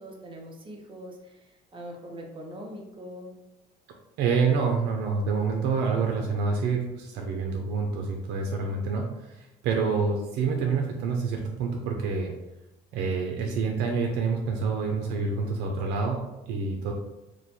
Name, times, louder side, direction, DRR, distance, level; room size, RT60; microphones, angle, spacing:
voice 1, 0.0-3.3 16.8-16.9, equal, 30° right, 0 dB, 0.8 m, -42 dB
voice 2, 4.2-12.3 12.9-16.9, right 4 dB, 85° right, 1 dB, 0.5 m, -27 dB
3.1 x 2.2 x 4.0 m, 0.98 s
cardioid pair, 110°, 17 cm